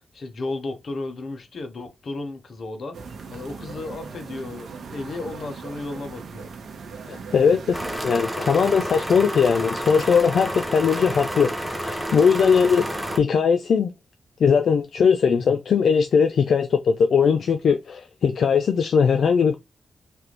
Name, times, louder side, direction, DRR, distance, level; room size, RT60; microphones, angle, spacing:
voice 1, 0.1-6.5, left 2 dB, 55° left, 0.7 m, -34 dB
sound 1, 2.9-8.0, right 5 dB, 70° right, 0.6 m, -39 dB
voice 2, 7.1-7.8 8.0-11.5 11.8-12.9 13.2-13.9 14.4-19.6, left 6 dB, 70° left, 0.3 m, -19 dB
sound 2, 7.7-13.2, right 1 dB, 5° right, 0.6 m, -30 dB
3.3 x 2.4 x 2.9 m
wide cardioid pair, 120°, 0 cm